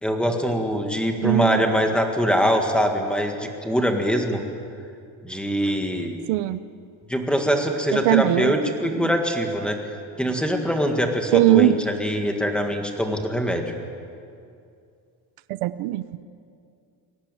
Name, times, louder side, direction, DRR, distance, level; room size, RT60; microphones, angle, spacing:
voice 1, 0.0-4.4 5.2-6.2 7.1-9.8 10.2-13.7, equal, ahead, 3 dB, 1.8 m, -23 dB
voice 2, 1.2-1.8 6.3-6.6 7.9-8.6 8.9-9.1 11.3-11.8 15.5-16.0, right 15 dB, 85° right, 14 dB, 0.9 m, -20 dB
23.0 x 18.0 x 9.1 m, 2.4 s
cardioid pair, 170°, 49 cm